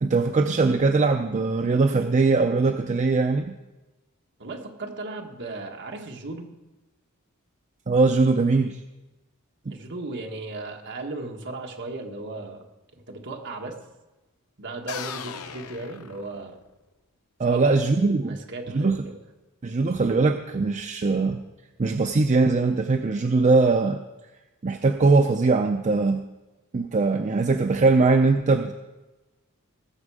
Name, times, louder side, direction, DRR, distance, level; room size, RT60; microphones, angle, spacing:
voice 1, 0.0-3.6 7.9-8.8 9.7-9.8 17.4-18.4 18.7-19.0 19.6-21.4 21.8-24.0 24.6-26.2 26.7-28.7, right 3 dB, 35° right, 6 dB, 0.5 m, -21 dB
voice 2, 4.4-6.5 9.7-12.6 12.9-13.8 14.6-16.6 17.4-17.9 18.3-19.2, right 2 dB, 55° right, 2 dB, 1.7 m, -36 dB
sound 1, 14.9-16.8, left 7 dB, 85° left, 0.7 m, -37 dB
18.5 x 7.4 x 4.9 m, 1.1 s
head